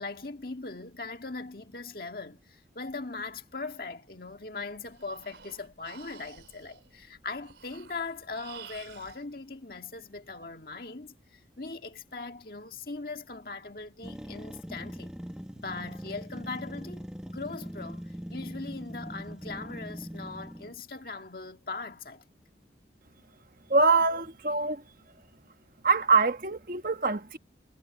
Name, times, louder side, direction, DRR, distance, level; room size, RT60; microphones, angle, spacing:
voice 1, 0.0-11.1 11.6-15.1 15.5-22.2, left 3 dB, 55° left, 1.9 m, -40 dB
Breathing, 4.6-9.2, right 7 dB, 85° right, 4.4 m, -51 dB
sound 1, 14.0-20.8, equal, 5° right, 1.2 m, -41 dB
voice 2, 23.7-24.8 25.8-27.4, right 4 dB, 50° right, 1.2 m, -24 dB
head